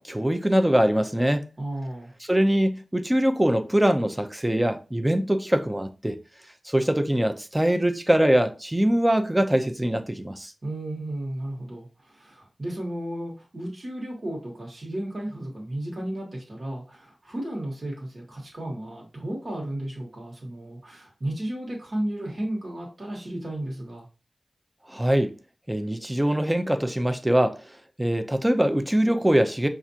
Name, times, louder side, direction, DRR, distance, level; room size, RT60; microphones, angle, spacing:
voice 1, 0.0-1.5 2.3-6.2 6.7-10.5 24.9-25.3 25.7-27.6 28.0-29.7, right 1 dB, 10° right, 0.5 m, -23 dB
voice 2, 1.6-2.1 10.6-24.1, right 1 dB, 50° right, 1.3 m, -33 dB
5.8 x 2.5 x 2.8 m
wide cardioid pair, 80°, 0 cm